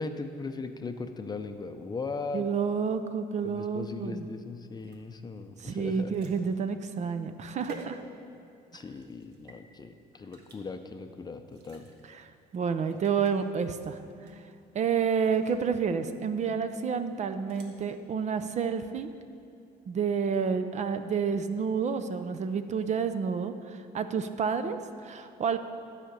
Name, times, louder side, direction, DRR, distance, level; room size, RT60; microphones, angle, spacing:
voice 1, 0.0-2.5 3.4-6.1 8.7-11.9, left 3 dB, 25° left, 7 dB, 0.6 m, -38 dB
voice 2, 2.3-4.3 5.6-8.0 12.2-12.3 12.5-14.0 14.3-14.4 14.7-19.1 19.9-25.6, right 6 dB, 45° right, 10 dB, 0.6 m, -29 dB
sound 1, 4.8-8.5 9.0-9.6 10.3-10.6 11.5-12.1 12.5-12.6 12.9-13.4 14.2-14.6 15.1-15.7 17.2-17.7, right 2 dB, 75° right, 1.4 m, -50 dB
13.0 x 5.0 x 6.7 m, 2.6 s
cardioid pair, 110°, 17 cm